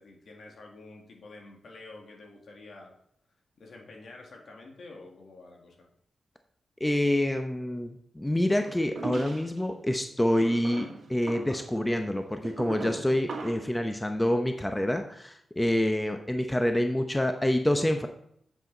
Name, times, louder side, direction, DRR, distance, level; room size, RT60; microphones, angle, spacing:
voice 1, 0.0-2.9 3.6-5.9, left 2 dB, 65° left, 1 dB, 2.0 m, -48 dB
voice 2, 6.8-18.1, left 1 dB, 10° left, 6 dB, 0.8 m, -27 dB
sound 1, 8.6-9.6 10.3-13.7, right 3 dB, 60° right, 2.1 m, -39 dB
7.8 x 7.8 x 4.0 m, 0.71 s
cardioid pair, 70°, 0 cm